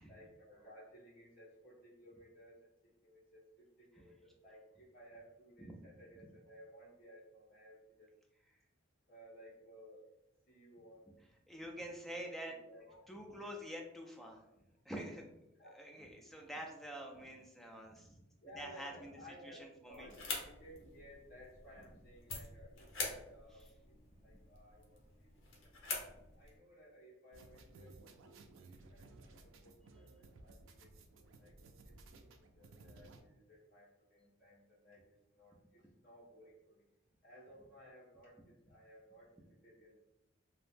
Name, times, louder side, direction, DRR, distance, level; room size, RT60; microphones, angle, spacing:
voice 1, 0.0-2.6 3.0-8.1 9.1-10.1 10.4-11.1 11.8-12.3 12.6-13.5 15.6-15.7 18.4-23.9 24.2-25.7 26.4-31.9 32.2-36.8 37.2-40.0, equal, 40° left, -9 dB, 1.5 m, -59 dB
voice 2, 11.5-12.5 13.1-14.4 14.8-15.3 15.8-18.2 18.5-19.1 19.4-20.1 23.5-23.7, equal, ahead, 1 dB, 0.3 m, -47 dB
sound 1, 19.9-26.6, left 3 dB, 70° left, 0.7 m, -46 dB
sound 2, 27.3-33.2, right 3 dB, 70° right, 0.4 m, -58 dB
2.7 x 2.0 x 3.3 m, 0.89 s
head